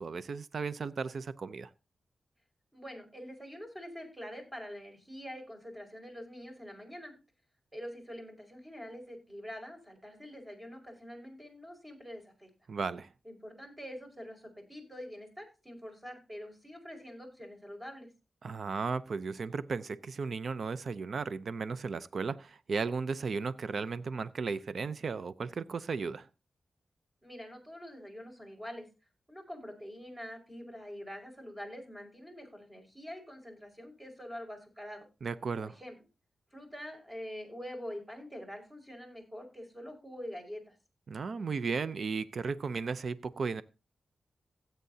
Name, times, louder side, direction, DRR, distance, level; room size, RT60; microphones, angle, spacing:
voice 1, 0.0-1.7 12.7-13.1 18.4-26.3 35.2-35.8 41.1-43.6, right 5 dB, 70° right, 0.6 m, -35 dB
voice 2, 2.7-7.1 7.7-12.5 13.2-18.1 27.2-28.9 29.3-35.1 35.6-36.0 36.5-40.8, equal, 20° right, 5.2 m, -45 dB
16.5 x 8.1 x 2.8 m
cardioid pair, 55°, 0 cm